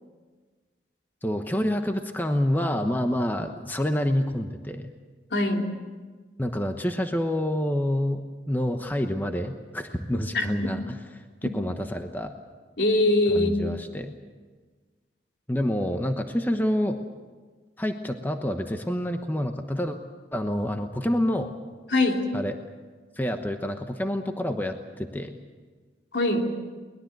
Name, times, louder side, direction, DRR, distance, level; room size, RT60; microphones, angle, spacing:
voice 1, 1.2-4.9 6.4-8.2 8.5-11.0 11.4-12.3 13.3-14.1 15.5-17.0 17.8-20.0 20.3-21.5 22.3-22.6 23.2-25.4, equal, 10° left, 5 dB, 1.0 m, -27 dB
voice 2, 5.3-5.7 10.3-10.7 12.8-13.6 21.9-22.2 26.1-26.5, left 2 dB, 70° left, 2 dB, 2.9 m, -22 dB
22.5 x 20.5 x 8.0 m, 1.4 s
head